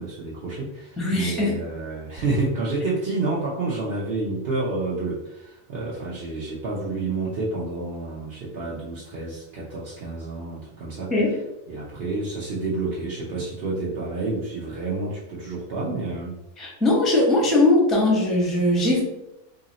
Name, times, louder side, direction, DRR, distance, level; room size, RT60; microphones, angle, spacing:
voice 1, 0.0-11.1 11.7-16.4, right 3 dB, 55° right, -6 dB, 0.7 m, -29 dB
voice 2, 1.0-1.6 11.1-11.3 16.6-19.0, left 2 dB, ahead, -3 dB, 0.6 m, -20 dB
2.8 x 2.7 x 3.9 m, 0.87 s
omnidirectional pair, 1.6 m